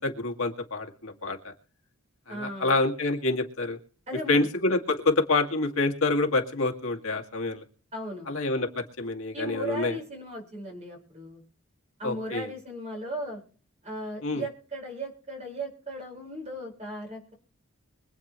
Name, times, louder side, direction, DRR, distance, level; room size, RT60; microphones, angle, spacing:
voice 1, 0.0-1.5 2.3-3.8 4.3-7.6 8.3-10.0 12.0-12.5 14.2-14.4, left 3 dB, 75° left, 3 dB, 2.1 m, -27 dB
voice 2, 2.3-2.7 4.1-4.5 7.9-8.3 9.3-11.4 12.0-13.4 13.8-17.3, right 1 dB, 30° right, 0 dB, 4.9 m, -37 dB
24.5 x 8.8 x 3.1 m, 0.42 s
head